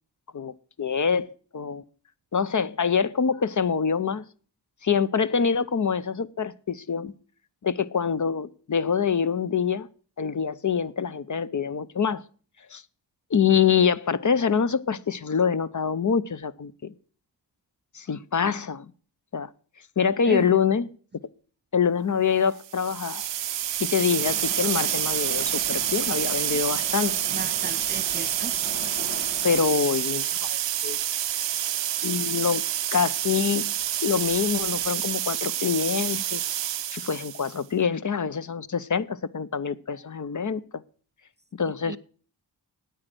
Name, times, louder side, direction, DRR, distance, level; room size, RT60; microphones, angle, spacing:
voice 1, 0.3-1.8 2.3-4.3 4.8-7.1 7.6-9.9 10.2-12.2 12.7-12.8 13.3-16.9 17.9-18.9 19.3-19.5 20.0-20.9 21.7-23.3 23.8-27.1 29.4-31.0 32.0-32.6 32.9-40.8 41.5-42.0, left 6 dB, 45° left, 0.7 m, -25 dB
sound 1, 22.6-37.6, right 11 dB, 75° right, 0.6 m, -28 dB
Subway metro underground, 24.2-29.7, left 4 dB, 80° left, 1.8 m, -41 dB
voice 2, 27.3-28.5 41.8-42.0, right 3 dB, 25° right, 0.5 m, -34 dB
9.4 x 8.9 x 7.6 m
wide cardioid pair, 75°, 44 cm